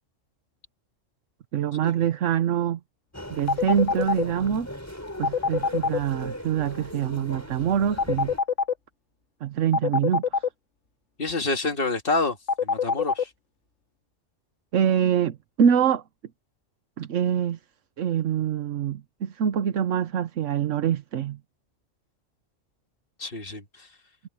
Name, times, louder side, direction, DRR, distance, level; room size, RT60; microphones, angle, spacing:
voice 1, 1.5-2.8 3.3-4.7 5.2-8.3 9.4-10.4 14.7-16.0 17.0-17.6 18.0-21.4, right 9 dB, 80° right, 1.2 m, -25 dB
Human voice, 3.1-8.4, equal, 10° left, 6.2 m, -39 dB
sound 1, 3.5-4.2 5.2-6.0 8.0-8.7 9.7-10.5 12.5-13.2, left 6 dB, 70° left, 2.1 m, -23 dB
voice 2, 11.2-12.4 12.6-13.3 23.2-23.6, left 3 dB, 45° left, 2.2 m, -27 dB
omnidirectional pair, 1.3 m